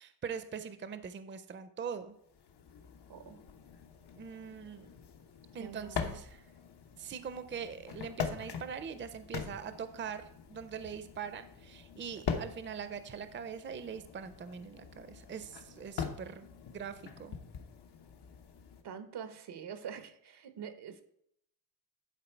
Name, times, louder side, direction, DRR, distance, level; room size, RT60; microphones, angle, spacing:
voice 1, 0.0-2.1 4.2-4.9 5.5-6.4 7.0-17.4, right 7 dB, 30° right, 11 dB, 0.4 m, -42 dB
sound 1, 2.2-18.8, left 6 dB, 90° left, 1.0 m, -43 dB
voice 2, 5.6-6.1 18.8-21.0, right 7 dB, 85° right, 9 dB, 0.9 m, -45 dB
11.0 x 4.5 x 4.4 m, 0.73 s
wide cardioid pair, 170°, 39 cm